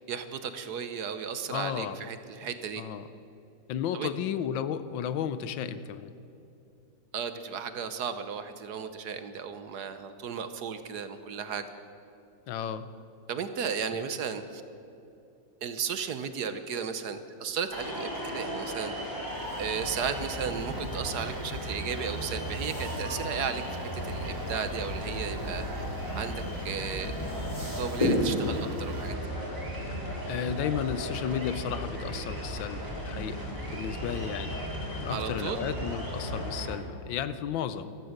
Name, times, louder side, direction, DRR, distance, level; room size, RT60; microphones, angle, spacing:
voice 1, 0.1-2.8 3.9-4.1 7.1-11.7 13.3-14.6 15.6-18.9 19.6-25.7 26.2-27.1 27.8-29.1 35.1-35.7, right 6 dB, 60° right, 10 dB, 1.3 m, -35 dB
voice 2, 1.5-2.0 2.8-3.0 3.7-6.1 12.5-12.9 30.3-34.6 35.0-37.9, left 8 dB, 80° left, 13 dB, 1.5 m, -33 dB
sound 1, 17.7-36.7, equal, 10° right, 3.6 m, -36 dB
sound 2, 19.2-29.1, left 1 dB, 20° left, 3.5 m, -36 dB
15.0 x 14.0 x 6.6 m, 2.7 s
omnidirectional pair, 2.1 m